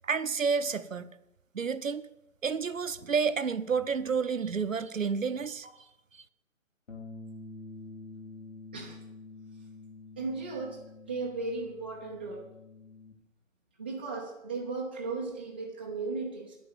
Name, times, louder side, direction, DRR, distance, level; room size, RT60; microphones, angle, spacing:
voice 1, 0.0-1.1 1.5-2.1 2.4-5.7 6.1-6.2, right 5 dB, 70° right, 12 dB, 0.8 m, -30 dB
Bass guitar, 6.9-13.1, left 3 dB, 65° left, 2.9 m, -47 dB
voice 2, 10.2-10.8 11.1-12.5 13.8-16.6, right 3 dB, 10° right, -4 dB, 0.6 m, -36 dB
9.9 x 9.8 x 7.0 m, 0.88 s
figure-of-eight pair, 140°, 41 cm